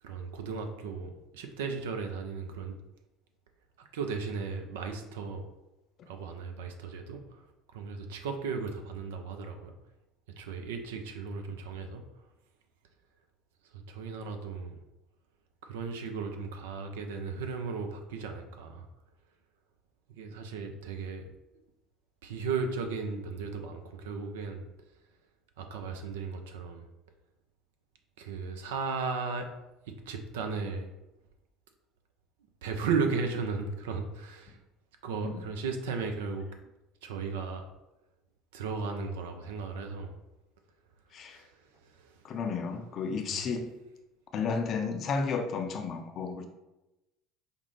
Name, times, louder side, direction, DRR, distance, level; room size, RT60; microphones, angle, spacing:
voice 1, 0.0-2.7 3.8-5.5 6.1-9.7 10.4-12.3 13.6-14.8 15.6-18.9 20.1-21.2 22.2-24.7 25.6-26.9 28.2-29.5 29.9-30.9 32.6-34.6 35.0-36.5 37.0-37.7 38.5-40.1 41.1-42.4 43.2-43.5, right 5 dB, 70° right, 5 dB, 0.5 m, -36 dB
voice 2, 41.1-41.4 42.2-43.7 44.3-46.4, left 5 dB, 45° left, 5 dB, 0.5 m, -32 dB
5.0 x 2.1 x 3.2 m, 0.96 s
figure-of-eight pair, 65°, 0 cm